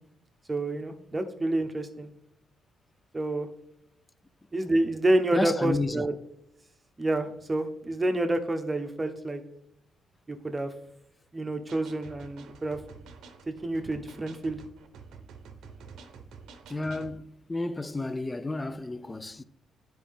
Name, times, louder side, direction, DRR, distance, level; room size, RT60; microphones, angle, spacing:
voice 1, 0.5-2.1 3.1-3.5 4.5-6.1 7.0-9.4 10.3-10.7 11.3-12.8 13.5-14.6, right 1 dB, 20° right, 0.8 m, -28 dB
voice 2, 5.3-6.1 16.7-19.4, left 2 dB, 15° left, 0.4 m, -31 dB
sound 1, 11.7-17.2, right 5 dB, 80° right, 0.7 m, -49 dB
9.2 x 4.4 x 3.5 m
cardioid pair, 90°, 0 cm